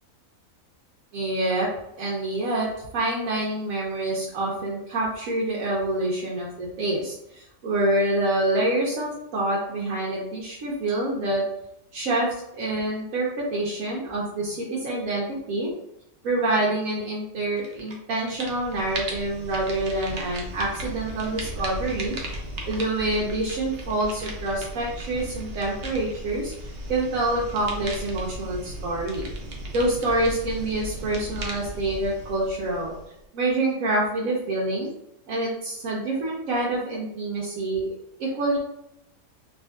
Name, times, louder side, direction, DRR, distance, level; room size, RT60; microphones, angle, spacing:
voice 1, 1.1-1.7 2.0-2.7 2.9-11.5 11.9-12.3 12.5-15.7 16.2-22.2 22.7-29.2 29.7-32.9 33.3-34.9 35.3-37.9 38.2-38.6, right 2 dB, 75° right, -5 dB, 1.1 m, -26 dB
sound 1, 17.6-17.9 18.2-33.2, right 1 dB, 60° right, 0.7 m, -36 dB
3.5 x 2.4 x 2.3 m, 0.82 s
omnidirectional pair, 1.5 m